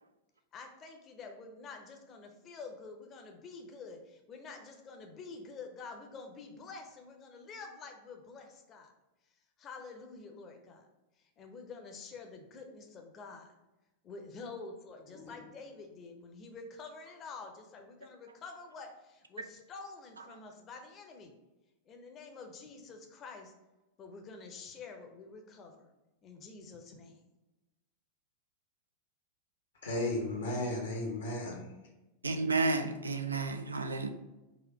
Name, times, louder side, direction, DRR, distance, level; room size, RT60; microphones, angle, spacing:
voice 1, 0.5-8.9 9.6-10.9 11.4-13.5 14.0-21.3 21.9-23.5 24.0-25.9 26.2-27.2, left 4 dB, 30° left, 3 dB, 0.6 m, -48 dB
voice 2, 29.8-31.7, left 1 dB, 70° left, 0 dB, 0.8 m, -34 dB
voice 3, 32.2-34.1, right 3 dB, 75° right, 7 dB, 0.4 m, -31 dB
4.1 x 2.5 x 4.8 m, 1.0 s
figure-of-eight pair, 90°, 0 cm